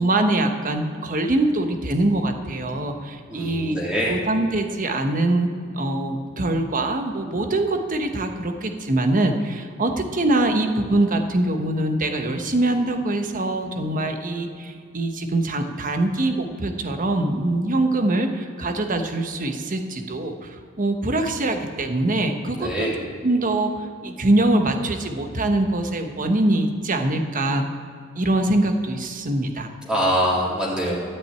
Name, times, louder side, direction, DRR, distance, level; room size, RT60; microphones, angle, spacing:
voice 1, 0.0-3.8 4.1-5.5 5.7-22.9 23.2-27.6 28.2-29.7, right 2 dB, 40° right, 6 dB, 1.1 m, -23 dB
voice 2, 3.3-4.1 22.5-22.9 29.8-31.0, equal, 5° right, -5 dB, 2.7 m, -24 dB
13.5 x 6.0 x 9.0 m, 2.3 s
head